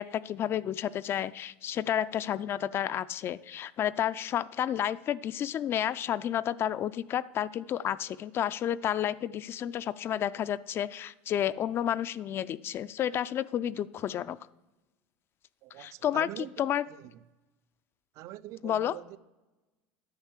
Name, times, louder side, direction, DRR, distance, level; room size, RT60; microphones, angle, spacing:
voice 1, 0.0-14.4 15.8-16.3 16.6-16.8 18.6-18.9, left 10 dB, 40° left, 0.4 m, -31 dB
voice 2, 15.6-16.7 17.0-17.2 18.1-19.2, right 15 dB, 55° right, 0.4 m, -44 dB
10.5 x 5.4 x 7.3 m
supercardioid pair, 110°, 6 cm